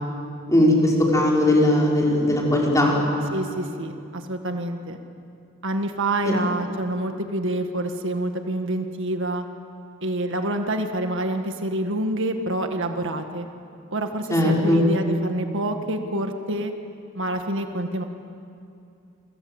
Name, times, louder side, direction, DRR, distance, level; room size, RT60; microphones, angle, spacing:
voice 1, 0.5-3.0 6.3-6.4 14.3-14.8, left 1 dB, 15° left, -3 dB, 5.8 m, -19 dB
voice 2, 3.3-5.0 5.6-9.4 10.0-13.5 13.9-16.7 17.1-18.0, right 1 dB, 60° right, 6 dB, 1.7 m, -27 dB
28.5 x 26.0 x 8.0 m, 2.6 s
head